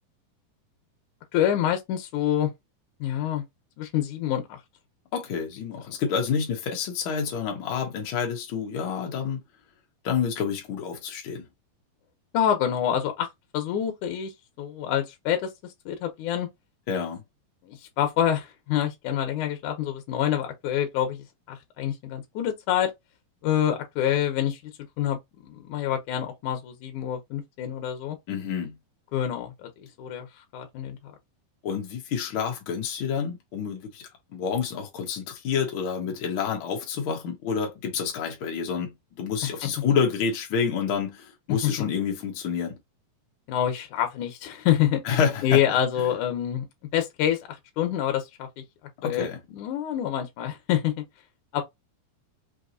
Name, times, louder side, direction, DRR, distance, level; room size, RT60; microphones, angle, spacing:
voice 1, 1.3-2.5 3.0-3.4 3.8-4.6 12.3-13.3 13.5-14.3 14.6-15.5 15.9-16.5 17.6-22.9 23.4-24.6 25.0-28.2 29.1-30.3 30.5-31.0 39.4-39.5 41.5-41.7 43.5-46.7 46.9-47.4 47.8-48.5 49.0-50.9 51.5-51.6, left 10 dB, 70° left, 2.0 m, -26 dB
voice 2, 5.1-9.4 10.0-11.5 16.9-17.2 28.3-28.7 31.6-38.9 39.2-42.7 45.0-45.6 49.0-49.4, left 6 dB, 90° left, 1.1 m, -28 dB
5.4 x 2.9 x 2.5 m
omnidirectional pair, 4.3 m